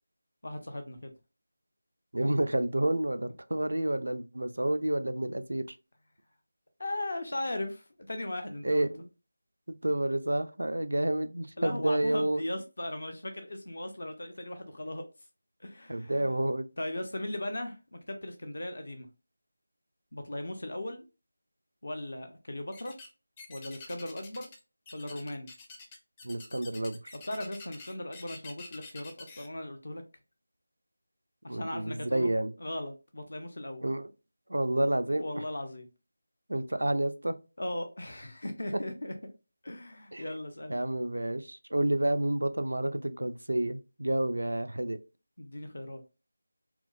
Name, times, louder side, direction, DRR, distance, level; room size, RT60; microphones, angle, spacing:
voice 1, 0.4-1.1 6.8-8.9 11.6-15.0 15.6-16.3 16.8-19.1 20.1-21.1 21.8-22.9 23.5-24.5 24.9-25.5 27.3-30.0 31.4-32.3 32.6-33.9 35.1-35.9 37.6-39.3 39.6-40.8 45.4-46.0, left 1 dB, 65° left, 0.7 m, -38 dB
voice 2, 2.1-5.7 8.6-9.1 9.7-12.4 15.9-16.7 26.2-27.1 31.5-32.5 33.8-34.1 34.5-35.2 36.5-37.4 40.1-40.2 40.7-45.0, right 1 dB, 80° right, 0.4 m, -29 dB
sound 1, 22.7-23.1 23.4-24.6 24.9-29.5, left 3 dB, 20° left, 0.5 m, -48 dB
4.5 x 2.0 x 2.4 m
figure-of-eight pair, 165°, 0 cm